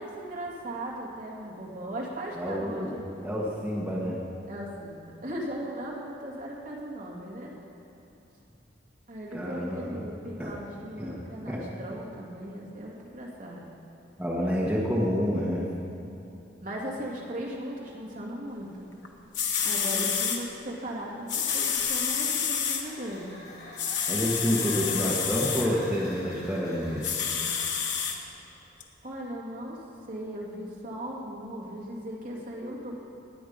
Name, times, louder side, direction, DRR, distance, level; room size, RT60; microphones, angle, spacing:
voice 1, 0.0-3.3 4.5-7.5 9.1-13.6 16.6-18.9 19.6-23.4 29.0-29.8 30.1-32.9, right 1 dB, 45° right, -4 dB, 2.5 m, -38 dB
voice 2, 2.4-2.9 3.2-4.2 9.3-10.0 10.4-10.5 11.0-11.1 11.5-11.6 14.2-15.6 24.1-27.1, equal, 5° right, -6 dB, 1.5 m, -28 dB
sound 1, 19.0-19.1 19.3-20.4 21.3-22.8 23.8-25.7 27.0-28.2 28.8-28.9, left 7 dB, 80° left, 1.4 m, -28 dB
sound 2, 22.3-28.5, left 1 dB, 60° left, 3.7 m, -45 dB
20.0 x 9.1 x 5.2 m, 3.0 s
head